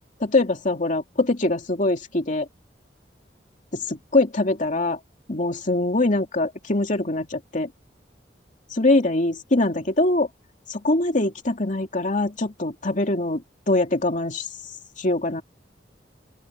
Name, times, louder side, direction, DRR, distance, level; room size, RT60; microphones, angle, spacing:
voice 1, 0.2-2.5 3.7-5.0 5.3-7.7 8.7-10.3 10.7-14.5 15.0-15.4, left 2 dB, 45° left, 2.8 m, -23 dB
open air
head